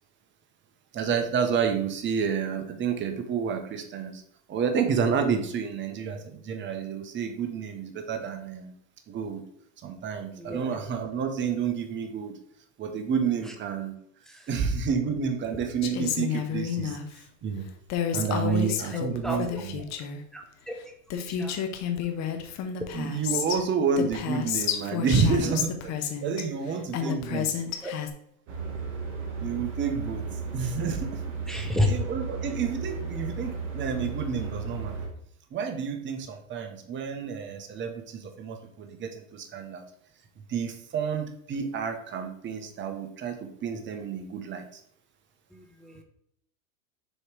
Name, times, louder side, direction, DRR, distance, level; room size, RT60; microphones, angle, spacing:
voice 1, 0.9-4.2 4.5-8.7 9.1-9.4 9.8-12.4 12.8-14.0 14.5-17.0 17.4-17.7 18.1-19.8 22.9-27.5 29.4-31.2 31.6-34.9 35.5-39.8 40.5-44.8, right 6 dB, 25° right, 6 dB, 0.9 m, -30 dB
voice 2, 10.4-10.7 14.3-14.5 18.4-19.6 20.3-20.7 21.1-21.6 27.0-27.4 27.8-27.9 31.5-31.9 45.5-46.0, left 1 dB, ahead, 3 dB, 0.7 m, -33 dB
Female speech woman speaking, 15.8-17.0 17.9-20.2 20.8-20.9 21.1-23.6 24.0-26.4 26.9-28.1, left 8 dB, 40° left, 0.8 m, -30 dB
sound 1, 28.5-35.1, right 5 dB, 55° right, 1.8 m, -34 dB
6.5 x 3.1 x 4.6 m, 0.70 s
supercardioid pair, 115°, 43 cm